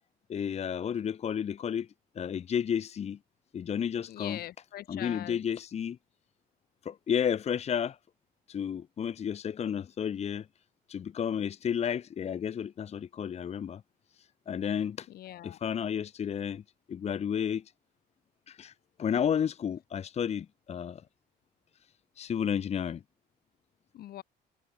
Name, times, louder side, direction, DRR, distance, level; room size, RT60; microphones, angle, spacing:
voice 1, 0.3-1.9 2.2-3.2 3.5-4.4 4.9-6.0 6.8-8.0 8.5-10.5 10.9-13.8 14.5-15.1 15.4-16.6 16.9-17.6 18.5-18.7 19.0-21.0 22.2-23.0, left 8 dB, 40° left, 1.0 m, -32 dB
voice 2, 4.1-5.4 15.1-15.6 23.9-24.2, left 13 dB, 65° left, 2.0 m, -42 dB
cardioid pair, 110°, 17 cm